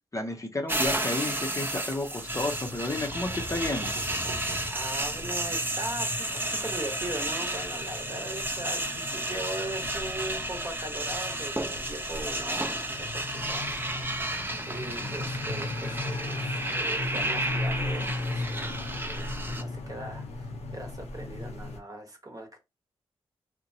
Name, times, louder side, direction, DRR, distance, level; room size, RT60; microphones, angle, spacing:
voice 1, 0.1-4.0, left 2 dB, 30° left, 0.7 m, -32 dB
sound 1, 0.7-19.6, right 1 dB, 20° right, 0.6 m, -32 dB
sound 2, 2.3-21.8, left 2 dB, 80° left, 0.6 m, -38 dB
sound 3, 2.7-5.6, right 1 dB, 90° right, 0.6 m, -42 dB
voice 2, 4.6-22.6, right 1 dB, 35° right, 1.0 m, -40 dB
2.8 x 2.1 x 2.7 m
supercardioid pair, 45°, 11 cm